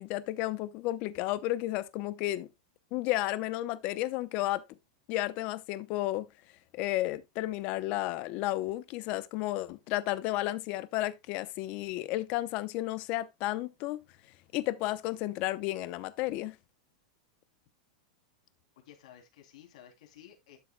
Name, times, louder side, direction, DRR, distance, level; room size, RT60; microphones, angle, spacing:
voice 1, 0.0-2.5 2.9-4.6 5.1-6.3 6.7-14.0 14.5-16.6, left 16 dB, 35° left, 0.7 m, -32 dB
voice 2, 18.8-20.6, left 10 dB, 65° left, 3.0 m, -54 dB
12.0 x 6.9 x 2.2 m
supercardioid pair, 165°, 4 cm